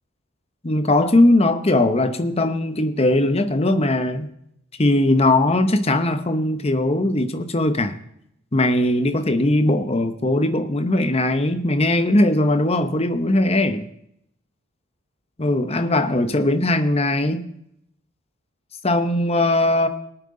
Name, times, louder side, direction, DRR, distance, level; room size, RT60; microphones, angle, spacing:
voice 1, 0.6-4.3 4.8-8.0 8.5-13.9 15.4-17.5 18.8-19.9, left 1 dB, 30° left, 9 dB, 0.9 m, -19 dB
19.5 x 9.1 x 3.8 m, 0.76 s
head